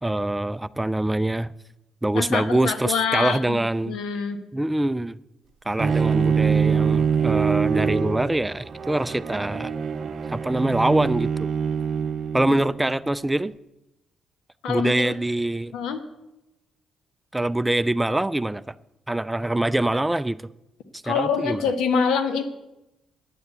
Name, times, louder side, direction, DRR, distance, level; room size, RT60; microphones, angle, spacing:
voice 1, 0.0-1.5 2.0-4.0 4.5-5.2 5.7-9.7 10.3-11.5 12.3-13.5 14.7-15.7 17.3-18.8 19.1-20.4 20.9-21.7, right 1 dB, 10° right, 0.3 m, -24 dB
voice 2, 2.1-3.6 3.9-4.4 14.6-15.1 15.7-16.0 21.0-22.4, left 6 dB, 85° left, 1.4 m, -25 dB
Bowed string instrument, 5.8-12.9, right 6 dB, 50° right, 0.7 m, -24 dB
9.8 x 7.2 x 8.1 m
cardioid pair, 90°, 0 cm